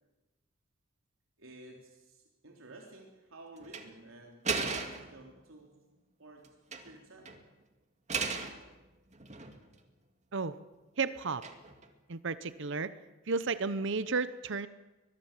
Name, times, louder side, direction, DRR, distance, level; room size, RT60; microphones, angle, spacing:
voice 1, 1.4-5.8 6.2-6.5 6.8-7.4, right 2 dB, 90° right, 1 dB, 3.5 m, -53 dB
sound 1, 3.6-3.9 4.4-5.2 6.4-6.9 7.3-7.4 8.1-8.6 9.1-9.8 11.4-11.9, right 4 dB, 35° right, 2.3 m, -35 dB
voice 2, 11.0-11.4 12.1-12.9 13.3-14.7, right 4 dB, 65° right, 14 dB, 0.8 m, -32 dB
23.0 x 21.5 x 7.5 m, 1.1 s
head